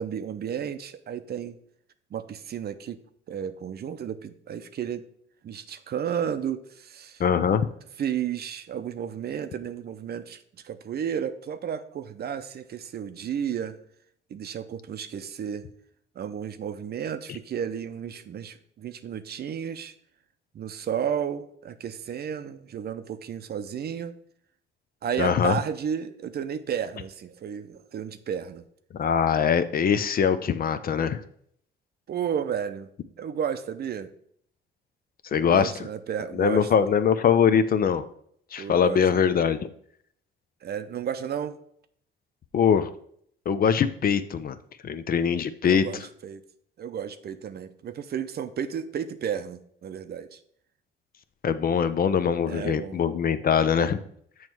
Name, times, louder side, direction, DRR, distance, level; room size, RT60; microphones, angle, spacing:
voice 1, 0.0-1.6 2.1-3.0 3.3-5.0 5.4-7.2 8.0-13.8 14.3-15.7 16.2-19.9 20.5-24.1 25.0-28.6 32.1-32.9 33.2-34.1 35.4-36.7 38.6-39.1 40.6-41.6 45.6-46.4 46.8-50.4 52.5-53.0, right 8 dB, 55° right, 11 dB, 0.6 m, -32 dB
voice 2, 7.2-7.7 25.2-25.6 29.0-31.2 35.3-35.7 36.4-38.0 38.5-39.6 42.5-42.9 43.5-44.6 44.8-45.8 51.4-54.0, left 7 dB, 50° left, 12 dB, 0.5 m, -22 dB
7.1 x 3.1 x 6.1 m, 0.66 s
cardioid pair, 90°, 20 cm